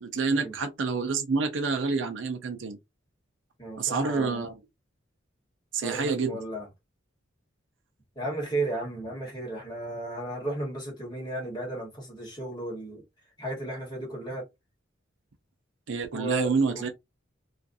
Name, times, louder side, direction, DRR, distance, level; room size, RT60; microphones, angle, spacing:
voice 1, 0.0-2.8 3.8-4.6 5.7-6.4 15.9-16.9, right 4 dB, 70° right, 0.5 m, -28 dB
voice 2, 3.6-4.4 5.8-6.7 8.1-13.0 13.4-14.4 16.1-16.9, right 2 dB, 20° left, 1.2 m, -34 dB
2.4 x 2.4 x 2.6 m
head